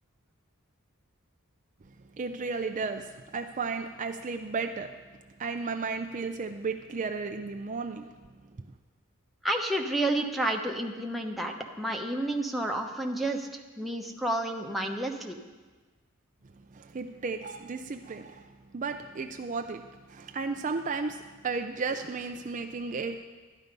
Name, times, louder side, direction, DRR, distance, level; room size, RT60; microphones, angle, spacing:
voice 1, 2.1-5.0 5.4-8.1 8.6-8.7 16.7-23.2, right 4 dB, 35° right, 6 dB, 0.5 m, -34 dB
voice 2, 9.4-13.5 13.8-15.4, right 1 dB, ahead, 1 dB, 1.0 m, -30 dB
13.0 x 11.0 x 5.3 m, 1.3 s
head